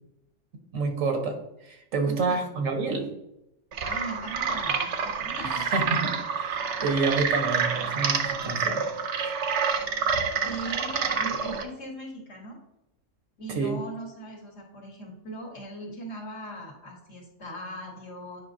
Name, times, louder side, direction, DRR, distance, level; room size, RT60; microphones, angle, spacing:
voice 1, 0.7-3.1 5.4-8.8 13.5-13.8, right 4 dB, 90° right, 4 dB, 1.5 m, -28 dB
voice 2, 2.1-2.6 3.8-5.7 10.4-12.6 13.4-18.4, right 1 dB, 60° left, -1 dB, 2.0 m, -39 dB
sound 1, 3.7-11.6, right 6 dB, 70° right, 0.9 m, -28 dB
8.7 x 5.2 x 2.7 m, 0.84 s
omnidirectional pair, 1.3 m